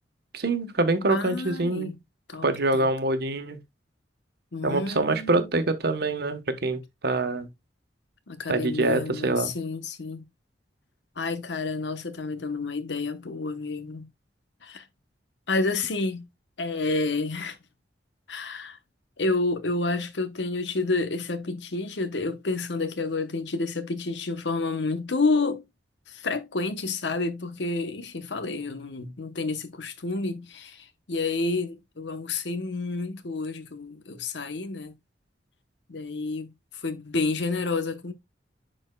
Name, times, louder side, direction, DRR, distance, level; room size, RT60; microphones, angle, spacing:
voice 1, 0.3-1.9 2.4-3.6 4.6-7.5 8.5-9.5, right 2 dB, 65° right, 1.1 m, -25 dB
voice 2, 1.1-2.0 2.3-2.4 2.7-2.9 4.5-5.5 8.3-10.2 11.2-14.1 14.6-14.9 15.5-16.3 16.6-17.6 18.3-18.8 19.2-25.6 26.1-34.9 35.9-38.1, left 3 dB, 80° left, 0.9 m, -29 dB
11.0 x 4.4 x 2.2 m
head